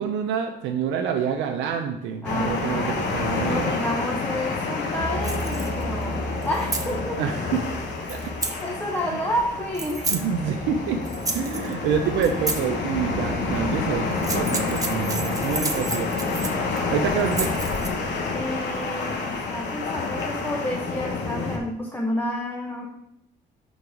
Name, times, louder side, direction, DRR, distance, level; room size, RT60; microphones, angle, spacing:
voice 1, 0.0-3.8 7.2-7.7 8.1-8.3 9.1-9.2 10.1-11.0 11.3-16.3 16.9-17.5, right 7 dB, 90° right, 5 dB, 0.5 m, -27 dB
sound 1, 2.2-21.6, left 3 dB, 70° left, 1.0 m, -28 dB
voice 2, 2.2-3.0 3.4-6.2 6.4-7.2 8.6-10.1 18.3-22.9, equal, 10° left, -1 dB, 0.9 m, -30 dB
sound 2, 5.0-13.7, right 2 dB, 70° right, 1.2 m, -38 dB
sound 3, 5.2-5.8 6.4-6.9 8.1-8.6 9.7-10.2 11.1-11.7 12.2-12.6 14.1-16.8 17.2-17.9, right 3 dB, 20° right, 0.8 m, -31 dB
5.3 x 3.9 x 4.7 m, 0.81 s
cardioid pair, 75°, 19 cm